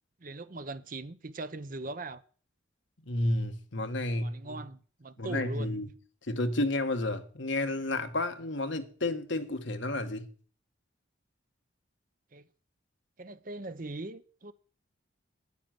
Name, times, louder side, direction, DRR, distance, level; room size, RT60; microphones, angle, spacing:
voice 1, 0.2-2.2 4.2-5.7 12.3-12.4 13.2-14.5, right 2 dB, 45° right, 0.8 m, -40 dB
voice 2, 3.1-4.6 5.2-5.9 6.3-10.3, left 2 dB, 65° left, 1.5 m, -31 dB
10.5 x 9.4 x 7.8 m
head